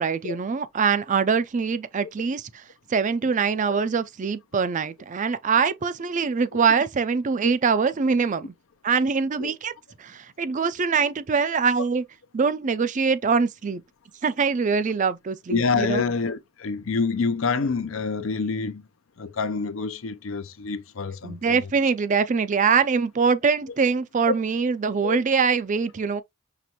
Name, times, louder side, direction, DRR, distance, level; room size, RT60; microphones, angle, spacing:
voice 1, 0.0-2.5 2.9-8.5 8.8-9.7 10.0-12.0 12.3-13.8 14.2-16.0 21.2-26.2, right 5 dB, 35° right, 0.4 m, -23 dB
voice 2, 15.5-18.8 19.2-21.6 24.3-24.4 25.0-25.2, left 4 dB, 65° left, 0.6 m, -27 dB
5.9 x 3.0 x 2.9 m
head